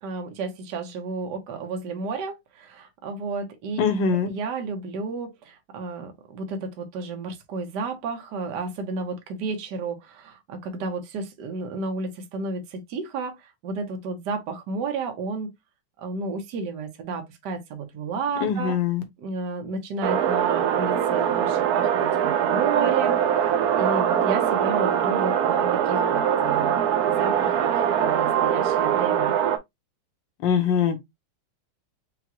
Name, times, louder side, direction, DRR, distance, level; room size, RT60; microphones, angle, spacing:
voice 1, 0.0-3.8 4.2-15.5 16.0-18.8 19.2-29.3, right 4 dB, 60° right, 1.4 m, -32 dB
voice 2, 3.8-4.3 18.4-19.0 30.4-31.0, left 6 dB, 65° left, 1.5 m, -22 dB
sound 1, 20.0-29.6, right 9 dB, 75° right, 0.8 m, -22 dB
6.0 x 2.4 x 2.8 m
omnidirectional pair, 2.3 m